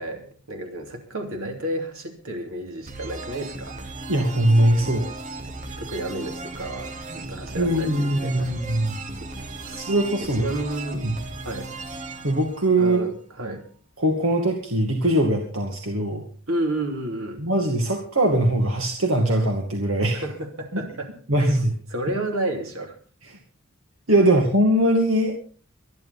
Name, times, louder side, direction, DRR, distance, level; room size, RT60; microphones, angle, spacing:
voice 1, 0.0-3.8 5.8-8.5 9.2-9.3 9.6-9.7 10.4-11.1 11.4-11.7 12.8-13.6 16.5-17.4 20.1-21.1 21.9-22.9, right 1 dB, 90° right, 4 dB, 3.2 m, -31 dB
sound 1, 2.9-13.5, right 3 dB, 35° right, 1.3 m, -36 dB
voice 2, 4.1-5.1 7.5-9.0 9.7-10.5 11.0-11.2 12.2-13.0 14.0-16.2 17.4-20.2 21.3-21.7 24.1-25.4, right 1 dB, 75° right, 2 dB, 2.2 m, -21 dB
24.5 x 11.0 x 4.2 m, 0.42 s
head